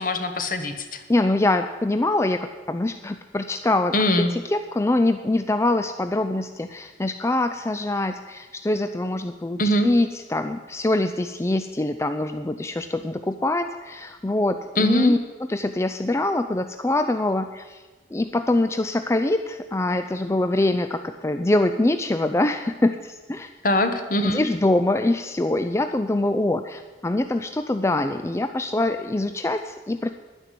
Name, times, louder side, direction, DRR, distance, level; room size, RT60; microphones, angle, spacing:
voice 1, 0.0-1.0 3.9-4.3 9.6-9.9 14.8-15.1 23.6-24.4, left 1 dB, 50° left, 8 dB, 1.3 m, -22 dB
voice 2, 1.1-15.2 15.5-17.8 18.1-23.5 24.2-30.1, left 2 dB, 15° left, 8 dB, 0.4 m, -24 dB
10.5 x 9.8 x 8.4 m, 1.3 s
head